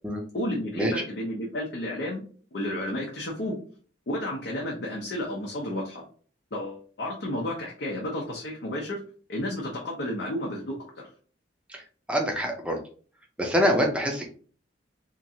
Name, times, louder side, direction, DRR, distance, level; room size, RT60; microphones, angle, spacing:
voice 1, 0.3-2.2 2.5-3.5 4.1-6.0 6.5-9.0 9.3-11.1, left 1 dB, 65° left, -2 dB, 0.6 m, -32 dB
voice 2, 12.1-12.8 13.4-14.3, equal, 5° right, 1 dB, 0.5 m, -25 dB
2.9 x 2.5 x 2.7 m, 0.42 s
head